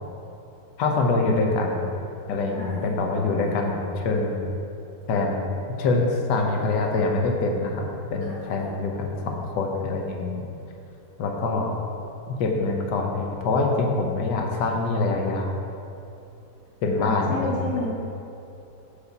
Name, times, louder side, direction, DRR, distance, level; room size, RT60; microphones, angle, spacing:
voice 1, 0.8-1.9 2.3-4.5 5.1-5.4 5.8-10.4 11.2-11.7 12.3-15.6 16.8-17.9, left 3 dB, 70° left, 2 dB, 1.2 m, -25 dB
voice 2, 2.5-3.7 8.3-8.8 17.0-17.9, left 1 dB, 40° left, -8 dB, 1.5 m, -32 dB
5.1 x 4.8 x 4.0 m, 2.8 s
omnidirectional pair, 2.0 m